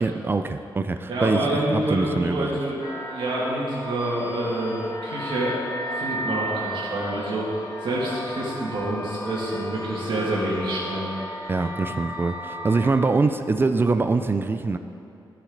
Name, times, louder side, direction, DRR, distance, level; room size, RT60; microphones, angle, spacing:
voice 1, 0.0-2.6 11.5-14.8, right 3 dB, 25° right, 9 dB, 0.4 m, -24 dB
voice 2, 1.1-2.8 3.1-5.7 5.9-11.1, right 1 dB, 70° right, -6 dB, 2.3 m, -27 dB
sound 1, 2.8-12.9, equal, 60° left, 1.7 m, -34 dB
14.5 x 6.6 x 4.0 m, 2.5 s
wide cardioid pair, 140°, 9 cm